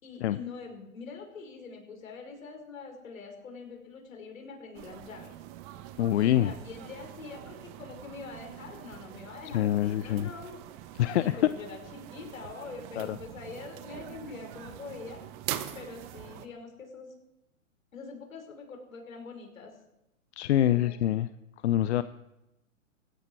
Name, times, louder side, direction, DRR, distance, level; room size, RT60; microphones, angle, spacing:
voice 1, 0.0-5.3 6.2-10.5 11.1-15.2 15.7-17.1 17.9-19.7 20.6-21.0, left 4 dB, 75° left, 3 dB, 5.4 m, -44 dB
sound 1, 4.7-16.5, right 13 dB, 35° right, 1.4 m, -43 dB
voice 2, 6.0-6.5 9.5-10.3 11.0-11.5 13.0-13.1 20.4-21.3 21.6-22.0, left 12 dB, 55° left, 14 dB, 0.7 m, -25 dB
18.0 x 16.5 x 4.7 m, 0.90 s
hypercardioid pair, 125°, 40 cm